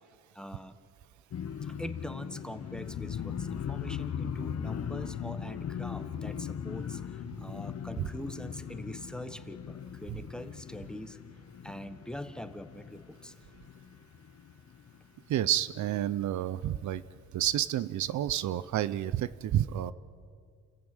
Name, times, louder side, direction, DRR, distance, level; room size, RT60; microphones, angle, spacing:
voice 1, 0.3-0.7 1.6-11.2 11.6-13.3, left 1 dB, 5° left, 10 dB, 1.3 m, -43 dB
sound 1, 1.3-15.2 15.6-16.0 16.3-16.6, left 8 dB, 55° left, 1.2 m, -39 dB
voice 2, 15.3-17.0 17.3-19.9, right 12 dB, 70° right, 17 dB, 0.7 m, -30 dB
29.0 x 14.5 x 9.0 m, 2.2 s
cardioid pair, 90°, 30 cm